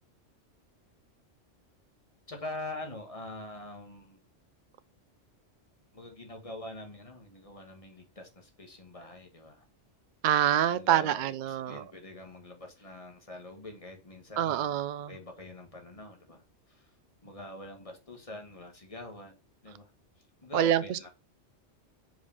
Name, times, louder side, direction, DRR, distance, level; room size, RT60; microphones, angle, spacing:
voice 1, 2.3-4.2 5.9-9.6 10.7-14.8 15.1-16.4 16.7-16.9 17.2-19.4 19.6-19.9 20.4-21.1, left 2 dB, 30° left, 1.8 m, -44 dB
voice 2, 10.2-11.8 14.4-15.1 20.5-21.1, right 11 dB, 60° right, 0.5 m, -26 dB
5.2 x 5.0 x 5.5 m
omnidirectional pair, 1.2 m